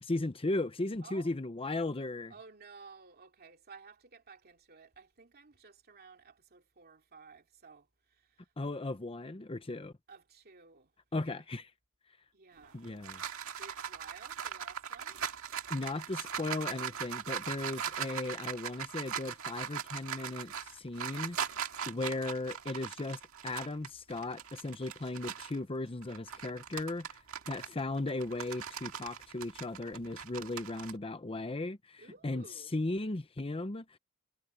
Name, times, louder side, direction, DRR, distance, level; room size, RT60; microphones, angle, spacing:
voice 1, 0.0-2.3 8.6-9.9 11.1-11.7 12.7-13.2 15.7-27.2 27.5-32.4 32.7-34.0, left 2 dB, 25° left, 0.8 m, -36 dB
voice 2, 1.0-1.3 2.3-8.5 10.1-10.9 11.2-11.5 12.3-12.8 13.6-15.2 27.4-27.8 32.0-32.8, right 4 dB, 45° right, 2.6 m, -55 dB
sound 1, 12.6-25.6 26.0-30.9, right 8 dB, 70° right, 2.0 m, -40 dB
head